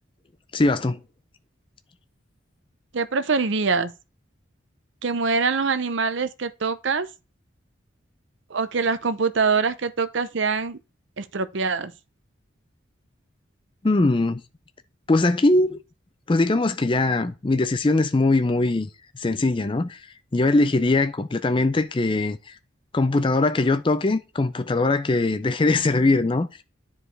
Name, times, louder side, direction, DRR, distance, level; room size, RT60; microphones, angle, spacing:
voice 1, 0.5-1.0 13.8-14.4 15.1-15.8 16.3-18.9 19.2-20.0 20.3-22.5 22.9-26.5, left 2 dB, 25° left, 0.4 m, -21 dB
voice 2, 2.9-3.9 5.0-7.1 8.5-10.8 11.2-11.9, right 4 dB, 70° right, 0.7 m, -24 dB
10.0 x 4.7 x 3.3 m
head